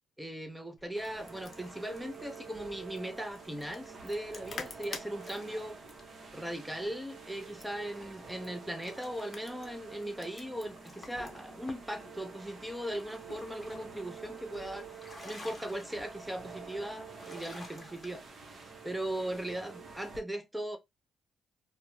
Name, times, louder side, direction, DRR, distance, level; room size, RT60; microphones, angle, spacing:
voice 1, 0.2-5.8 6.3-14.9 15.2-18.3 18.5-20.8, right 1 dB, 5° right, 0.5 m, -38 dB
sound 1, 0.8-11.9, left 4 dB, 45° left, 0.6 m, -50 dB
sound 2, 0.9-20.2, right 5 dB, 50° right, 0.7 m, -49 dB
sound 3, 1.0-18.9, left 2 dB, 20° left, 0.9 m, -57 dB
2.4 x 2.0 x 2.9 m
cardioid pair, 90°, 0 cm